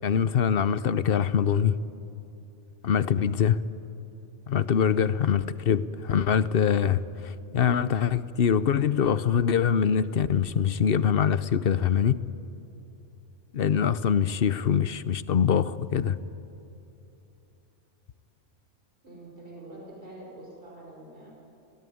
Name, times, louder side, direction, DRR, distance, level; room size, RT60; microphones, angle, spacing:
voice 1, 0.0-1.8 2.8-3.6 4.5-12.2 13.5-16.2, left 8 dB, 55° left, 0.9 m, -24 dB
voice 2, 19.0-21.3, right 1 dB, 50° right, 5.4 m, -45 dB
30.0 x 18.0 x 9.5 m
omnidirectional pair, 1.2 m